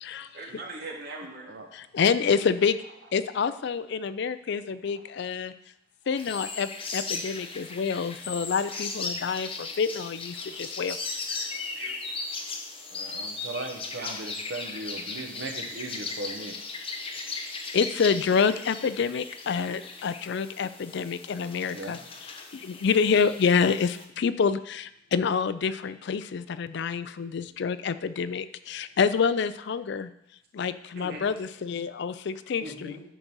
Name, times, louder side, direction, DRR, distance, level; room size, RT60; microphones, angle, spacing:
voice 1, 0.3-1.5 8.7-8.9 11.8-12.0 14.0-14.1 31.0-31.3 32.6-33.0, right 2 dB, 55° right, -1 dB, 2.0 m, -40 dB
voice 2, 1.7-2.8 3.1-5.5 6.1-11.0 11.4-11.5 17.7-30.1 30.5-33.0, left 6 dB, 65° left, 13 dB, 0.4 m, -27 dB
sound 1, 6.2-24.1, left 4 dB, 30° left, 0.9 m, -37 dB
voice 3, 12.9-16.5 21.7-22.0, right 2 dB, 80° right, 3 dB, 1.2 m, -38 dB
10.0 x 4.0 x 6.1 m, 0.78 s
head